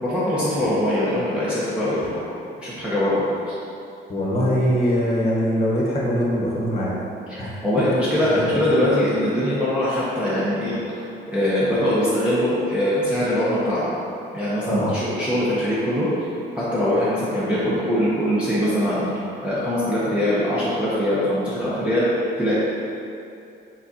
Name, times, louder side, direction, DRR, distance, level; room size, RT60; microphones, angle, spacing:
voice 1, 0.0-2.2 2.6-3.5 7.3-13.9 14.3-16.1 16.6-22.5, left 1 dB, 5° right, -11 dB, 1.0 m, -22 dB
voice 2, 4.1-6.9 7.4-7.5 14.7-14.9, equal, 30° left, -5 dB, 1.1 m, -22 dB
4.8 x 3.9 x 2.9 m, 2.6 s
cardioid pair, 90°, 20 cm